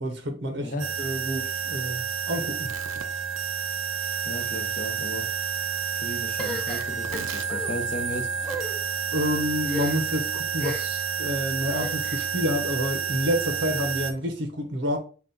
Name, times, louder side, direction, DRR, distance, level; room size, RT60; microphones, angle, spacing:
voice 1, 0.0-0.7 1.0-2.7 9.1-15.0, equal, 60° right, 0.8 m, -28 dB
sound 1, 0.8-14.1, right 6 dB, 85° right, 0.6 m, -30 dB
voice 2, 4.2-5.3 5.9-8.3, left 1 dB, 40° left, 0.8 m, -35 dB
sound 2, 6.4-7.7 8.4-8.8 9.6-10.2 10.6-11.0 11.7-12.3, left 1 dB, 5° left, 0.6 m, -36 dB
5.7 x 2.4 x 3.8 m
head